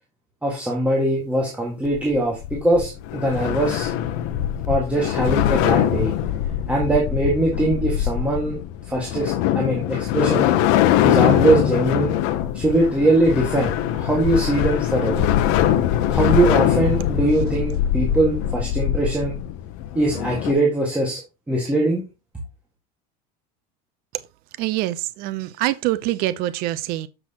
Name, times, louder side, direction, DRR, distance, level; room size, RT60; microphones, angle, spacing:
voice 1, 0.4-3.9 4.7-6.1 6.7-8.6 8.9-10.5 11.0-12.2 12.5-15.3 16.1-19.4 20.0-21.2 21.5-22.0, right 2 dB, 5° right, 1.7 m, -21 dB
sound 1, 1.9-20.5, left 11 dB, 60° left, 0.8 m, -22 dB
voice 2, 24.6-27.1, right 16 dB, 50° right, 0.6 m, -25 dB
7.7 x 6.1 x 2.9 m
supercardioid pair, 145°, 19 cm